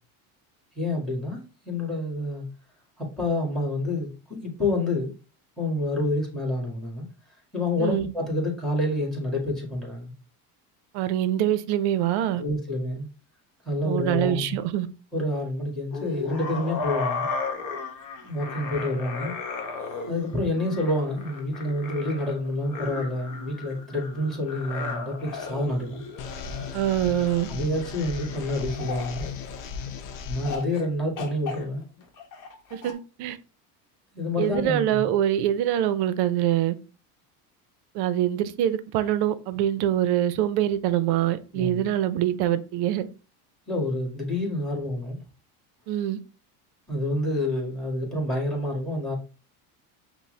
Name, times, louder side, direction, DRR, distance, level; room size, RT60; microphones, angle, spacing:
voice 1, 0.7-2.4 3.0-5.1 5.6-7.0 7.5-10.1 12.4-13.1 13.6-14.5 15.1-17.3 18.2-19.3 20.1-26.0 27.5-29.3 30.3-31.8 34.1-35.0 41.5-41.8 43.7-45.2 46.9-49.1, left 1 dB, ahead, 1.7 m, -28 dB
voice 2, 10.9-12.4 13.8-14.9 26.7-27.5 32.7-33.4 34.4-36.7 37.9-43.1 45.9-46.2, right 11 dB, 60° right, 0.6 m, -24 dB
sound 1, 15.9-30.0 30.4-30.9 31.2-32.9, left 4 dB, 45° left, 1.0 m, -36 dB
sound 2, 26.2-30.6, left 5 dB, 80° left, 0.7 m, -36 dB
5.7 x 2.1 x 3.2 m
supercardioid pair, 110°, 45 cm